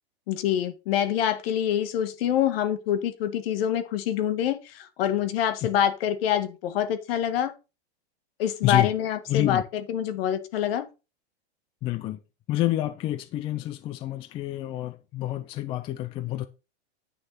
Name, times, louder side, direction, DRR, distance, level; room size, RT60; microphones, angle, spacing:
voice 1, 0.3-7.5 8.4-10.9, left 10 dB, 60° left, 1.8 m, -26 dB
voice 2, 9.3-9.6 11.8-12.2 12.5-16.5, left 15 dB, 15° left, 0.4 m, -28 dB
9.4 x 6.3 x 4.2 m
supercardioid pair, 150°, 33 cm